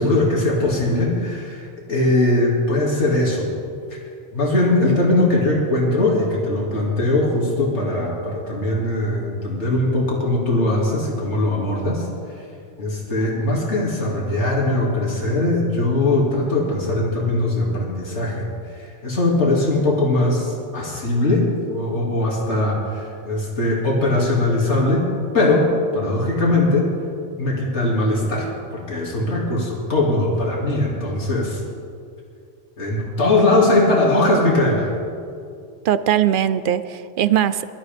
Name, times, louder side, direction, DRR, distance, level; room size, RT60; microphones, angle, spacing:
voice 1, 0.0-3.5 3.9-4.0 4.3-12.4 12.8-18.5 18.7-26.9 27.4-28.5 28.7-31.6 32.8-35.0, left 2 dB, 75° left, -3 dB, 2.8 m, -20 dB
voice 2, 35.8-37.7, right 10 dB, 60° right, 14 dB, 0.6 m, -20 dB
23.0 x 12.5 x 3.5 m, 2.4 s
omnidirectional pair, 1.2 m